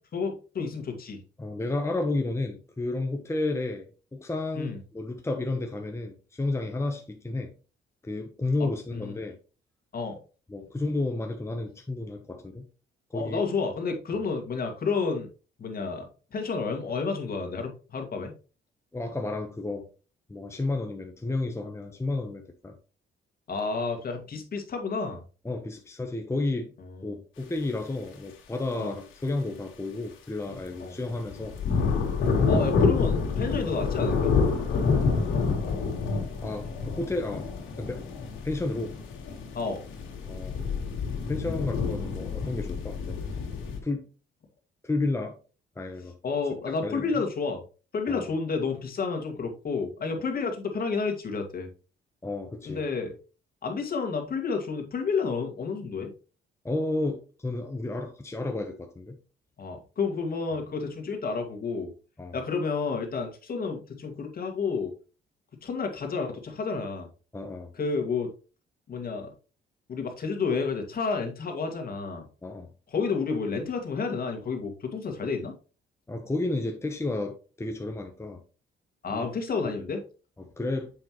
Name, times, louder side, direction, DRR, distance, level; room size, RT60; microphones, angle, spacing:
voice 1, 0.1-1.2 4.6-4.8 8.9-9.1 9.9-10.2 13.1-15.3 15.6-16.1 16.3-18.3 23.5-25.2 28.8-28.9 30.8-31.0 32.5-34.3 39.5-39.8 46.2-47.6 47.9-51.7 52.7-53.1 53.6-56.1 59.6-61.9 62.3-64.9 65.6-67.1 67.8-68.3 68.9-69.3 69.9-72.3 72.9-75.5 79.0-80.0, left 4 dB, 50° left, 2.0 m, -30 dB
voice 2, 1.4-7.5 8.0-9.4 10.5-12.7 13.1-13.4 14.1-14.2 18.9-19.9 20.3-22.8 25.4-26.7 27.0-31.6 32.2-32.5 36.4-37.5 37.8-38.1 38.4-39.0 40.2-40.6 41.3-43.3 43.8-44.1 44.8-45.4 45.8-46.2 46.8-47.2 48.1-48.3 52.2-52.8 56.6-59.2 62.2-62.4 67.3-67.7 72.4-72.7 76.1-78.4 79.1-79.3 80.4-80.9, left 2 dB, 15° left, 1.0 m, -32 dB
sound 1, 30.5-30.7 31.1-43.8, left 5 dB, 85° left, 2.1 m, -28 dB
7.7 x 5.5 x 3.1 m
cardioid pair, 90°, 20 cm